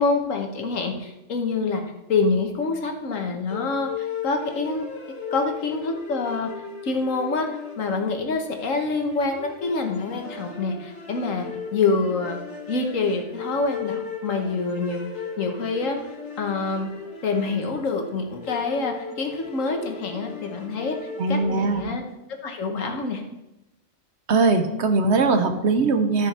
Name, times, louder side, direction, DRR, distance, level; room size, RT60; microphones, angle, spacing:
voice 1, 0.0-1.8 2.1-4.8 5.3-6.5 6.8-7.5 7.8-11.5 11.7-12.4 12.7-15.0 15.4-16.0 16.4-16.9 17.2-21.0 21.3-22.0 22.4-23.2, left 4 dB, 80° left, 4 dB, 1.6 m, -26 dB
sound 1, 3.5-22.0, left 5 dB, 60° left, 1.9 m, -37 dB
voice 2, 21.2-21.8 24.3-26.3, right 3 dB, 60° right, 7 dB, 1.1 m, -20 dB
12.5 x 6.3 x 4.3 m, 0.94 s
omnidirectional pair, 1.3 m